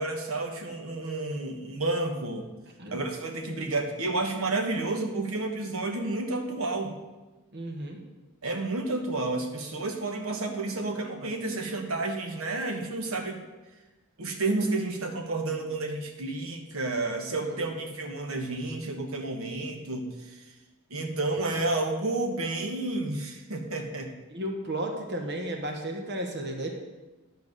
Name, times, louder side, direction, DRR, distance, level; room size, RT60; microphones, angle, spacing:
voice 1, 0.0-2.5 2.9-7.0 8.4-13.4 14.2-20.1 20.9-24.1, right 2 dB, 70° right, 4 dB, 1.3 m, -30 dB
voice 2, 7.5-8.0 17.4-17.6 24.3-26.7, right 1 dB, 50° right, 3 dB, 1.4 m, -33 dB
11.0 x 4.6 x 6.6 m, 1.1 s
head